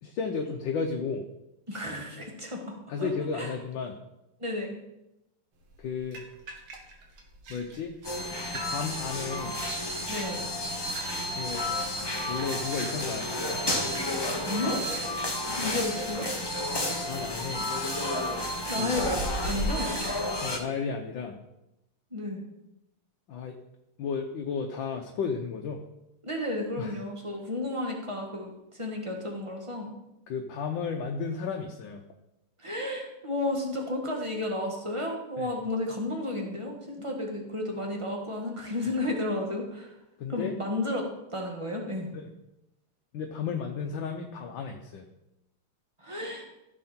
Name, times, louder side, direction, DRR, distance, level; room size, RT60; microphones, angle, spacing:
voice 1, 0.0-1.3 2.9-4.0 5.8-6.2 7.5-7.9 8.5-9.6 11.3-11.6 12.3-13.7 17.0-17.7 18.8-19.1 20.4-21.4 23.3-23.5 24.0-25.9 26.8-27.0 30.3-32.0 35.4-35.5 40.2-40.5 42.1-42.3 43.1-45.1, left 5 dB, 70° left, 2 dB, 1.5 m, -33 dB
voice 2, 1.7-3.5 4.4-4.7 10.1-10.5 14.4-14.9 15.6-16.3 18.7-20.0 22.1-22.4 26.2-29.9 32.6-39.9 40.3-42.1 46.0-46.4, left 1 dB, 15° right, 1 dB, 1.6 m, -32 dB
sound 1, 5.6-20.3, right 1 dB, 70° right, 2.3 m, -42 dB
sound 2, 8.0-20.6, left 1 dB, 20° left, 0.6 m, -31 dB
14.0 x 6.6 x 4.4 m, 0.89 s
omnidirectional pair, 2.4 m